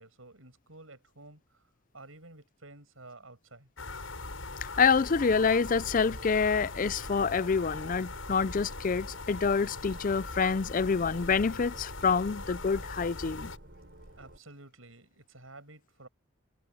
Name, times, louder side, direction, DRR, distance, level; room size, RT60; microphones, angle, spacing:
voice 1, 0.0-1.6 1.9-3.7 14.2-16.1, right 2 dB, 85° right, 7.4 m, -51 dB
sound 1, 3.8-13.6, left 3 dB, 85° left, 7.4 m, -41 dB
voice 2, 4.6-13.5, left 5 dB, 40° left, 0.4 m, -27 dB
sound 2, 5.6-14.4, right 1 dB, 60° right, 5.5 m, -51 dB
head